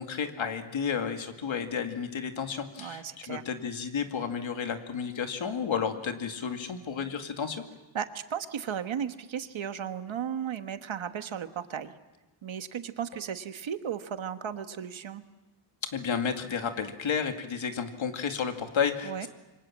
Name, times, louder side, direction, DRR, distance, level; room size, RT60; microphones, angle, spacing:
voice 1, 0.0-7.6 15.8-19.3, left 6 dB, 65° left, 6 dB, 2.3 m, -32 dB
voice 2, 2.8-3.4 7.9-11.9 12.4-15.3 19.0-19.3, right 8 dB, 70° right, 9 dB, 1.5 m, -35 dB
27.0 x 25.0 x 7.5 m, 1.1 s
wide cardioid pair, 160°, 50 cm